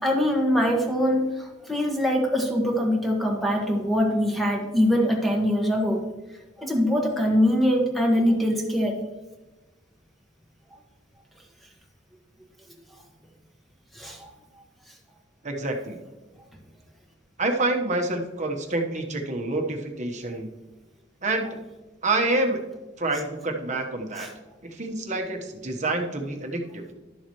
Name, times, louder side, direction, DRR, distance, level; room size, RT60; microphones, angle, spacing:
voice 1, 0.0-6.0 6.6-9.0 13.9-14.3 24.2-24.3, equal, ahead, 0 dB, 1.5 m, -23 dB
voice 2, 15.4-16.0 17.4-20.5 21.2-21.6 22.0-22.6 23.0-24.3 24.7-26.8, right 2 dB, 40° right, 3 dB, 1.2 m, -27 dB
12.0 x 7.3 x 3.1 m, 1.1 s
head